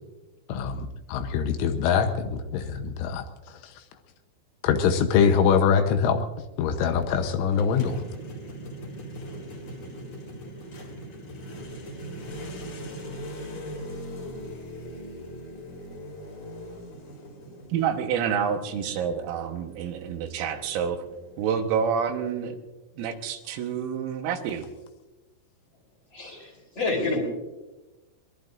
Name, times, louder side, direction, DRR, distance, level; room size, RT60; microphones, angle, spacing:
voice 1, 0.5-3.7 4.6-6.2 6.6-8.0, left 7 dB, 75° left, 7 dB, 3.3 m, -24 dB
sound 1, 7.5-21.8, equal, 45° left, 5.1 m, -40 dB
voice 2, 17.7-21.1 21.4-22.6 23.0-24.7, right 7 dB, 85° right, 5 dB, 3.8 m, -28 dB
voice 3, 26.1-27.2, left 3 dB, 25° left, 0 dB, 3.7 m, -28 dB
23.0 x 21.5 x 2.6 m, 1.1 s
omnidirectional pair, 5.8 m